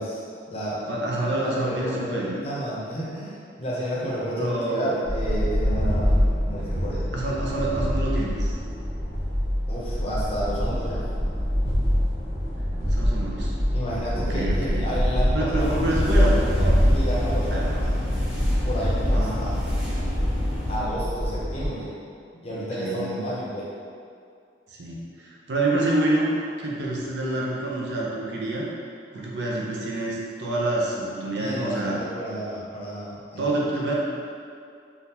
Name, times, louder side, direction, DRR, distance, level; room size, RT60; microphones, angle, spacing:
voice 1, 0.0-0.8 1.4-7.1 9.7-11.1 13.7-16.3 16.8-17.9 18.6-19.6 20.7-21.9 22.4-23.7 31.4-33.4, equal, 30° left, -7 dB, 0.6 m, -31 dB
voice 2, 0.9-2.3 4.4-5.0 7.1-8.5 12.9-13.5 14.2-14.9 15.3-16.9 17.5-17.8 19.1-19.4 22.5-23.1 24.7-26.3 26.6-28.7 29.1-32.0 33.4-33.9, right 2 dB, 70° right, -4 dB, 0.6 m, -27 dB
sound 1, 5.1-21.7, equal, 35° right, 1.0 m, -25 dB
sound 2, 15.6-20.8, left 1 dB, 5° right, 0.9 m, -29 dB
3.5 x 2.4 x 2.8 m, 2.3 s
head